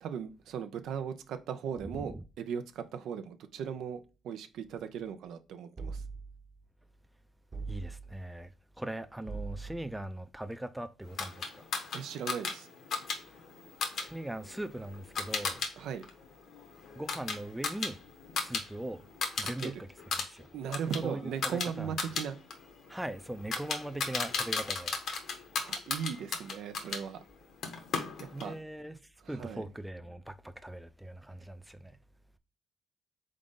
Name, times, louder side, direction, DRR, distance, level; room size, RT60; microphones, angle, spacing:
voice 1, 0.0-6.0 11.9-12.7 15.8-16.0 19.4-19.7 20.5-22.4 25.6-27.2 28.4-28.6 29.2-29.6, right 7 dB, 80° right, 0.5 m, -38 dB
voice 2, 1.8-2.2 7.7-8.5 8.8-11.7 13.9-15.6 17.0-18.0 18.3-19.1 19.4-19.7 20.1-20.5 21.0-21.9 22.9-25.0 28.3-29.0 29.3-32.0, right 1 dB, 5° right, 0.4 m, -40 dB
sound 1, 5.8-6.5 7.5-8.3 9.3-10.0, right 4 dB, 35° right, 0.9 m, -41 dB
sound 2, 11.2-15.7 16.0-18.6 18.9-19.7 20.0-27.0 27.6-28.5, left 4 dB, 65° left, 1.1 m, -36 dB
3.8 x 3.7 x 3.7 m
cardioid pair, 90°, 0 cm